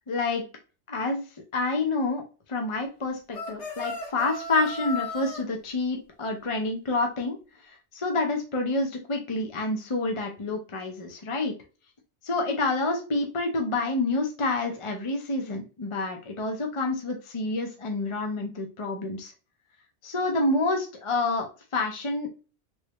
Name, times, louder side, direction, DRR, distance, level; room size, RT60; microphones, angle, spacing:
voice 1, 0.1-0.4 0.9-1.3 1.5-2.2 2.5-7.4 7.9-11.5 12.2-19.3 20.0-21.5 21.7-22.3, left 2 dB, 40° left, 3 dB, 0.5 m, -28 dB
sound 1, 3.3-5.4, left 3 dB, 85° left, 1.4 m, -35 dB
3.2 x 3.1 x 2.9 m, 0.34 s
omnidirectional pair, 1.2 m